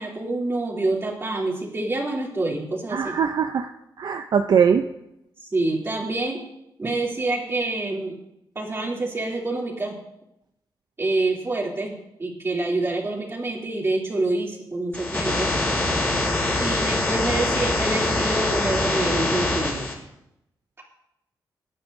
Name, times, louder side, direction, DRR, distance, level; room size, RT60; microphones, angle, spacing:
voice 1, 0.0-3.2 5.4-6.4 6.8-8.1 8.5-10.0 11.0-15.5 16.6-19.9, right 2 dB, 30° right, -2 dB, 2.8 m, -27 dB
voice 2, 2.9-3.7 4.0-4.8, right 7 dB, 65° right, 7 dB, 0.5 m, -21 dB
sound 1, 14.9-19.9, left 2 dB, 25° left, 5.3 m, -24 dB
20.5 x 9.7 x 2.6 m, 0.85 s
wide cardioid pair, 115°, 8 cm